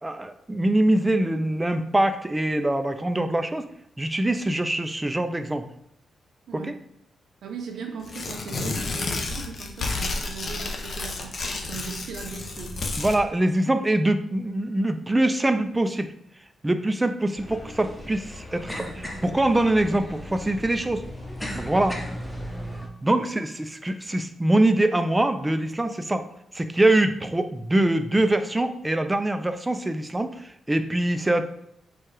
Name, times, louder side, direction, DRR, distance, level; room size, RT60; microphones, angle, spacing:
voice 1, 0.0-3.7 4.0-5.7 6.5-6.7 13.0-16.1 16.6-21.0 21.5-22.0 23.0-26.2 26.5-31.4, right 1 dB, 15° right, 9 dB, 0.4 m, -23 dB
voice 2, 6.5-6.8 7.4-12.8, right 5 dB, 75° right, 3 dB, 0.9 m, -38 dB
Tearing, 8.0-13.2, left 3 dB, 50° left, 0.7 m, -31 dB
sound 1, 17.4-22.9, equal, 5° left, 0.8 m, -36 dB
4.5 x 2.4 x 4.7 m, 0.77 s
cardioid pair, 100°, 0 cm